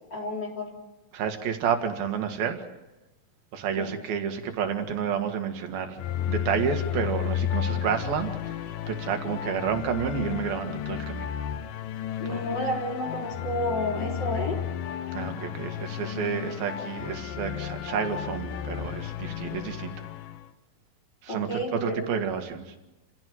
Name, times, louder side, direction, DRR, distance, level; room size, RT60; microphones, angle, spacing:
voice 1, 0.1-0.7 3.8-3.9 12.2-14.6 21.3-22.3, left 1 dB, 30° left, 1 dB, 4.1 m, -31 dB
voice 2, 1.1-2.7 3.5-6.0 6.3-11.3 12.3-12.4 15.1-19.9 21.2-22.7, right 7 dB, 80° right, 6 dB, 3.7 m, -30 dB
sound 1, 6.0-20.5, left 10 dB, 75° left, 2.4 m, -33 dB
28.5 x 16.0 x 7.9 m, 1.0 s
omnidirectional pair, 4.2 m